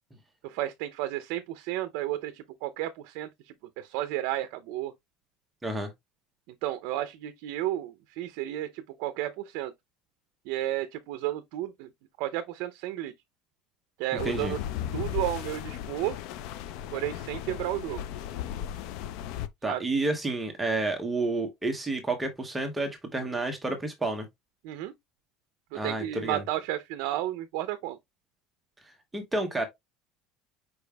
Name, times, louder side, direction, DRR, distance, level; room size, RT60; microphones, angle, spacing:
voice 1, 0.4-4.9 6.6-9.7 10.5-11.9 12.2-13.1 14.0-14.6 14.9-16.2 16.9-18.0 19.7-19.8 24.6-24.9 25.8-28.0, right 14 dB, 65° right, 0.5 m, -32 dB
sound 1, 14.2-19.5, left 10 dB, 60° left, 0.4 m, -36 dB
voice 2, 19.6-24.3 25.7-26.4 29.1-29.6, right 2 dB, 10° right, 0.8 m, -30 dB
5.1 x 4.6 x 2.2 m
cardioid pair, 170°, 0 cm